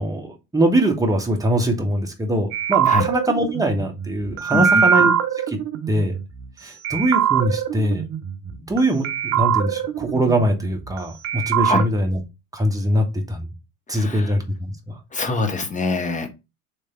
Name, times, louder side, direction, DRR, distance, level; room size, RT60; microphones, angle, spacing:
voice 1, 0.0-5.1 5.5-5.6 5.9-6.2 6.6-8.0 8.4-12.2 12.5-13.5 13.9-15.0, right 1 dB, 10° right, 1.0 m, -22 dB
sound 1, 2.5-6.5 6.8-8.8 9.0-11.0 11.2-11.8, right 8 dB, 35° right, 0.6 m, -22 dB
voice 2, 4.5-4.9 11.6-11.9 13.9-14.3 15.1-16.3, left 3 dB, 15° left, 1.0 m, -24 dB
3.3 x 3.3 x 4.2 m
figure-of-eight pair, 75°, 45 cm